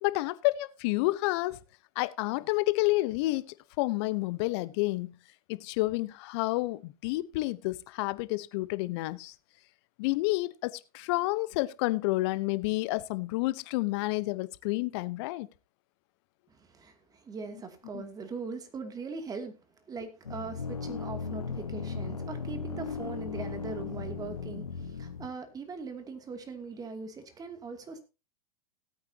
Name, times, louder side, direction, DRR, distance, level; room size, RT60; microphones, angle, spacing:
voice 1, 0.0-1.6 2.0-5.1 5.5-9.3 10.0-15.5 17.9-18.1, left 20 dB, 45° left, 0.9 m, -30 dB
voice 2, 16.5-19.5 19.9-28.0, right 4 dB, 20° right, 2.6 m, -41 dB
sound 1, 20.2-25.3, left 5 dB, 85° left, 1.1 m, -37 dB
17.5 x 8.8 x 2.9 m
figure-of-eight pair, 100°, 18 cm